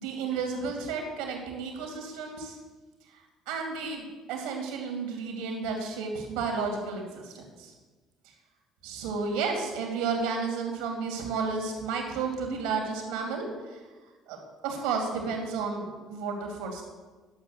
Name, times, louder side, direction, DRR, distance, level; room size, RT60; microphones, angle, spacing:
voice 1, 0.0-2.6 3.5-7.7 8.8-13.8 14.3-16.8, right 5 dB, 70° right, 2 dB, 2.4 m, -32 dB
11.0 x 7.1 x 6.4 m, 1.3 s
hypercardioid pair, 55°, 0 cm